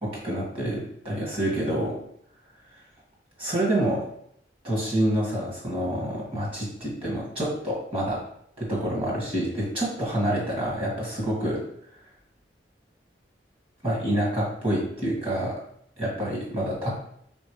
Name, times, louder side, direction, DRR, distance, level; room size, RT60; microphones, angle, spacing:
voice 1, 0.0-2.0 3.4-4.0 4.6-8.2 8.6-11.6 13.8-15.5 16.0-16.9, right 1 dB, 30° right, -4 dB, 1.6 m, -27 dB
4.2 x 4.0 x 3.2 m, 0.70 s
head